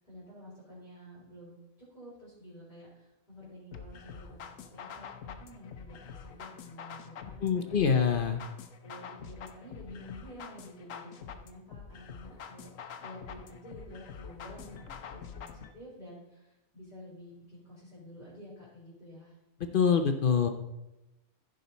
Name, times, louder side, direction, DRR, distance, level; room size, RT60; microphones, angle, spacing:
voice 1, 0.0-1.6 1.9-8.1 8.8-12.7 13.0-19.4, equal, 25° left, -8 dB, 3.6 m, -50 dB
sound 1, 3.7-15.7, left 7 dB, 80° left, 1.1 m, -46 dB
voice 2, 7.4-8.4 19.7-20.5, left 6 dB, 50° left, 7 dB, 0.8 m, -25 dB
14.5 x 5.1 x 4.0 m, 0.97 s
omnidirectional pair, 1.3 m